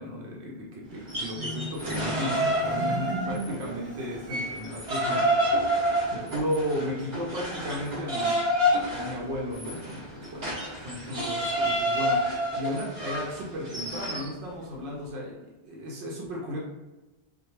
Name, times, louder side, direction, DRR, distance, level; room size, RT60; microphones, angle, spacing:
voice 1, 0.0-5.7 6.1-8.4 8.9-15.4 15.6-16.6, left 1 dB, 85° right, -3 dB, 0.9 m, -35 dB
sound 1, 1.0-3.7 4.0-14.3, equal, 45° right, 0.9 m, -28 dB
Marimba xylophone, 1.3-4.7, right 2 dB, 30° left, 0.5 m, -37 dB
2.2 x 2.2 x 2.9 m, 1.1 s
omnidirectional pair, 1.1 m